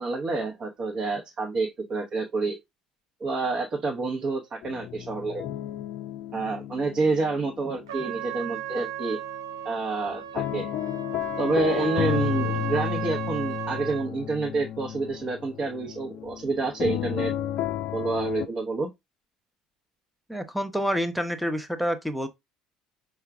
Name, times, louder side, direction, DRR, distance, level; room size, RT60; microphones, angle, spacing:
voice 1, 0.0-2.6 3.2-5.5 6.3-9.2 9.6-10.7 11.4-17.3 17.9-18.9, right 3 dB, 40° right, 1.0 m, -28 dB
sound 1, 4.6-8.7 9.0-18.5, left 12 dB, 50° left, 0.4 m, -33 dB
Trumpet, 7.9-14.1, right 14 dB, 75° right, 0.5 m, -35 dB
voice 2, 20.3-22.3, equal, ahead, 0.8 m, -28 dB
5.6 x 2.3 x 3.5 m
figure-of-eight pair, 60°, 3 cm